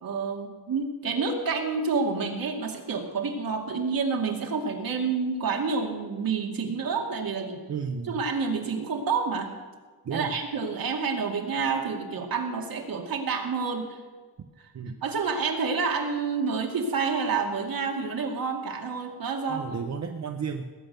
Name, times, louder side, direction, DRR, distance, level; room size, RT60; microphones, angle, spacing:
voice 1, 0.0-7.6 8.1-9.5 10.1-14.0 15.0-19.7, right 5 dB, 60° right, 2 dB, 2.4 m, -28 dB
voice 2, 7.7-8.3 10.0-10.3 14.7-15.0 19.5-20.6, right 6 dB, 45° right, 5 dB, 0.9 m, -33 dB
19.5 x 8.7 x 6.7 m, 1.5 s
wide cardioid pair, 130°, 39 cm